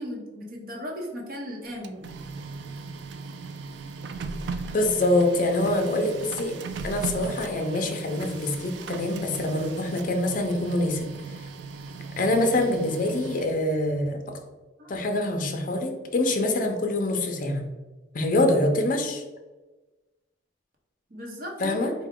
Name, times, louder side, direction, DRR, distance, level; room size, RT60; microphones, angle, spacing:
voice 1, 0.0-2.1 14.8-15.0 21.1-21.8, equal, 55° right, 0 dB, 0.9 m, -36 dB
Printer, 1.7-13.7, right 4 dB, 70° right, 0.3 m, -38 dB
voice 2, 4.7-6.6 6.8-11.1 12.2-14.4 14.9-17.7 18.1-19.2 21.6-21.9, left 1 dB, 45° left, 4 dB, 0.5 m, -25 dB
4.6 x 2.2 x 3.6 m, 1.2 s
head